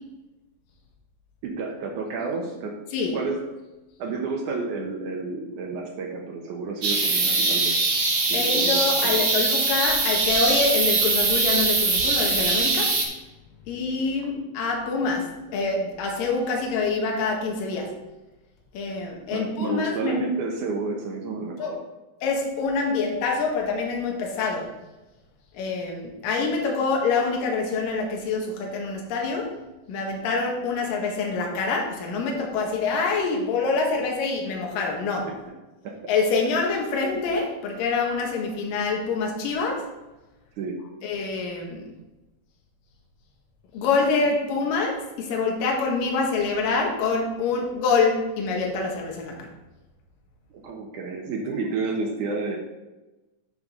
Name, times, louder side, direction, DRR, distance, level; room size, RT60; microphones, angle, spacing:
voice 1, 1.4-2.8 3.1-3.4 4.0-7.8 8.3-9.2 19.3-21.8 35.8-36.1 40.6-40.9 50.5-52.6, right 4 dB, 70° right, 1 dB, 2.2 m, -30 dB
sound 1, 6.8-13.0, right 3 dB, 45° right, 1.7 m, -22 dB
voice 2, 8.3-12.9 13.7-17.9 18.7-20.2 21.6-21.7 22.2-24.7 25.5-29.5 29.9-35.3 36.1-39.9 41.0-41.8 43.7-49.5, left 4 dB, 75° left, 0 dB, 3.0 m, -26 dB
9.7 x 6.9 x 3.7 m, 1.1 s
omnidirectional pair, 4.1 m